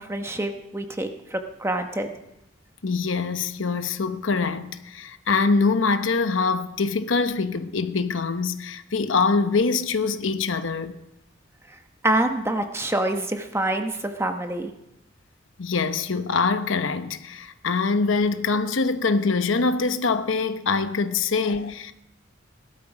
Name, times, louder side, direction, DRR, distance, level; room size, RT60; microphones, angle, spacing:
voice 1, 0.0-2.1 12.0-14.7, right 1 dB, 15° right, 1.1 m, -26 dB
voice 2, 2.8-11.0 15.6-21.9, left 4 dB, 75° left, 0.8 m, -24 dB
18.0 x 12.5 x 5.0 m
head